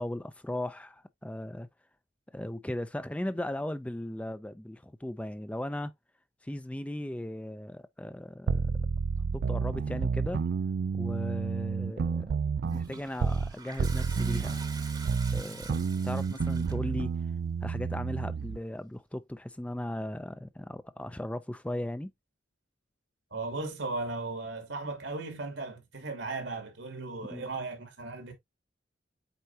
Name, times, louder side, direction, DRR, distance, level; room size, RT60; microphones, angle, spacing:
voice 1, 0.0-1.7 2.3-5.9 6.4-8.6 9.3-10.4 10.9-12.3 12.7-14.6 15.3-17.1 17.6-22.1 27.3-27.4, left 1 dB, 5° left, 0.5 m, -37 dB
sound 1, 8.5-13.5 13.8-18.6, right 5 dB, 65° right, 0.4 m, -30 dB
Toilet flush, 12.6-16.9, right 4 dB, 20° right, 1.0 m, -46 dB
voice 2, 23.3-28.3, right 3 dB, 85° right, 2.7 m, -36 dB
8.0 x 4.5 x 2.8 m
head